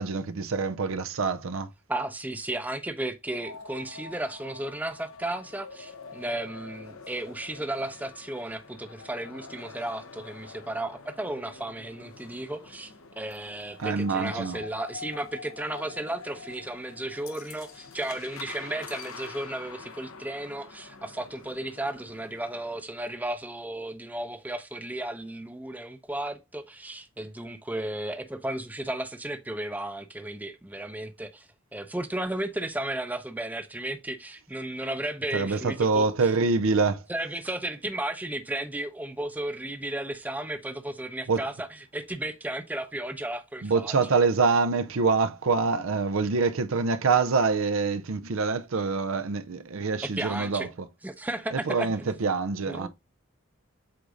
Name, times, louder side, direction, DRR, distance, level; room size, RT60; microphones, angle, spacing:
voice 1, 0.0-1.7 13.8-14.6 35.3-37.0 41.3-41.4 43.6-50.7 51.5-52.9, right 4 dB, 70° right, 0.6 m, -25 dB
voice 2, 1.9-36.1 37.1-44.0 50.0-50.7 51.0-52.1 52.7-52.9, right 1 dB, 10° right, 0.6 m, -34 dB
sound 1, 3.4-22.8, left 4 dB, 75° left, 0.9 m, -46 dB
7.9 x 2.6 x 4.9 m
head